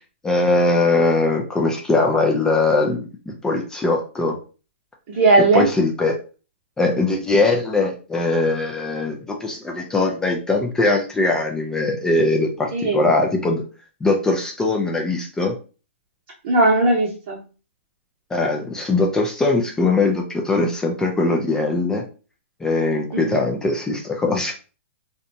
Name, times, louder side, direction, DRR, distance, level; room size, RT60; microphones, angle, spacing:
voice 1, 0.2-4.4 5.4-6.1 6.8-13.6 14.0-15.5 18.3-22.0 22.6-24.5, left 3 dB, 10° left, 1 dB, 0.3 m, -21 dB
voice 2, 5.1-5.7 12.7-13.1 16.4-17.4 23.1-23.4, right 2 dB, 45° right, -5 dB, 0.8 m, -17 dB
2.7 x 2.2 x 2.6 m, 0.35 s
hypercardioid pair, 145°, 7 cm